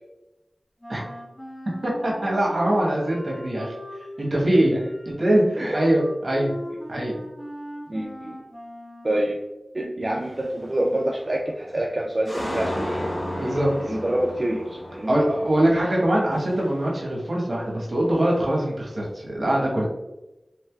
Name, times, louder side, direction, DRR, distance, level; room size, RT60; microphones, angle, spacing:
Wind instrument woodwind instrument, 0.8-9.4, equal, 25° left, 1.0 m, -40 dB
voice 1, 1.8-3.7 4.2-4.8 5.1-6.5 6.9-7.2 13.4-13.7 15.1-19.8, right 1 dB, 60° right, -3 dB, 1.0 m, -22 dB
voice 2, 7.9-8.4 9.0-9.4 9.7-13.1 13.3-13.6 13.9-15.2, right 1 dB, 45° right, 0 dB, 0.3 m, -27 dB
sound 1, 10.2-10.6 11.1-11.7 12.0-17.4 17.7-18.8, left 1 dB, 50° left, 0.9 m, -34 dB
3.2 x 3.1 x 2.2 m, 1.0 s
wide cardioid pair, 45°, 0 cm